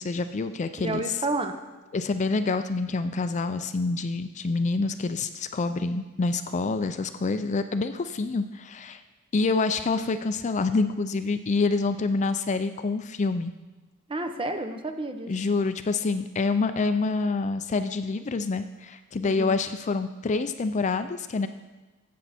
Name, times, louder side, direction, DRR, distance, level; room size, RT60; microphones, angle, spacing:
voice 1, 0.0-1.2 1.9-9.0 9.3-13.5 15.3-21.5, left 3 dB, 35° left, 10 dB, 0.4 m, -27 dB
voice 2, 0.8-1.5 14.1-15.3 19.2-19.6, right 2 dB, 25° right, 7 dB, 0.8 m, -30 dB
14.0 x 8.0 x 4.3 m, 1.2 s
head